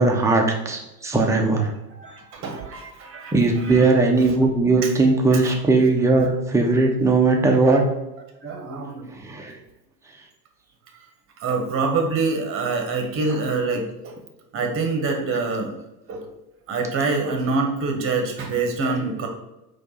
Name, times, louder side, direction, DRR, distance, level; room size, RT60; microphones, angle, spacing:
voice 1, 0.0-1.7 3.3-7.8 9.2-9.6, right 3 dB, 5° right, 2 dB, 0.5 m, -19 dB
voice 2, 2.0-3.9 4.2-4.3 4.8-4.9 5.4-5.6 7.6-7.8 8.4-9.3 11.4-14.2 14.5-15.7 16.1-16.3 16.7-19.3, right 3 dB, 25° right, 3 dB, 0.9 m, -26 dB
4.3 x 2.5 x 4.2 m, 0.95 s
figure-of-eight pair, 80°, 49 cm